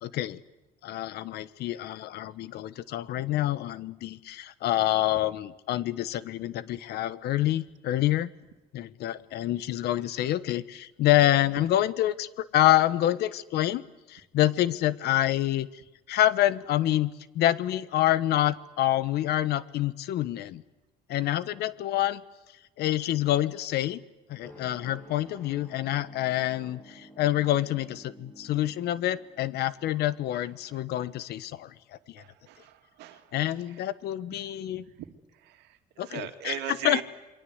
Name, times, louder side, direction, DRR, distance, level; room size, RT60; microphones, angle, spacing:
voice 1, 0.0-0.4 0.8-8.3 8.7-13.8 14.1-15.7 16.1-20.6 21.1-22.2 22.8-24.0 24.3-31.7 32.1-32.2 33.3-34.8 36.0-37.0, left 13 dB, 75° left, 16 dB, 1.2 m, -27 dB
sound 1, 24.4-30.8, right 1 dB, 10° left, 7.9 m, -52 dB
voice 2, 32.2-33.3 34.7-35.1 35.4-37.0, right 13 dB, 85° right, 7 dB, 2.3 m, -39 dB
28.0 x 23.0 x 8.1 m, 1.0 s
cardioid pair, 110°, 17 cm